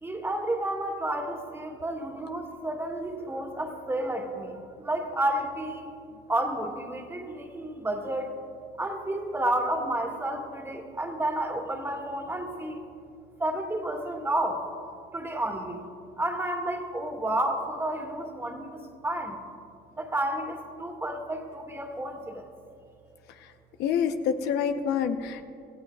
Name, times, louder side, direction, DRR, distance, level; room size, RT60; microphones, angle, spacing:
voice 1, 0.0-5.9 6.3-8.3 8.8-12.9 13.4-14.6 15.1-15.8 16.2-19.3 20.0-22.4, right 1 dB, 15° right, 2 dB, 2.0 m, -31 dB
voice 2, 23.8-25.4, left 7 dB, 85° left, 7 dB, 0.9 m, -27 dB
26.5 x 16.0 x 2.4 m, 2.6 s
cardioid pair, 110°, 17 cm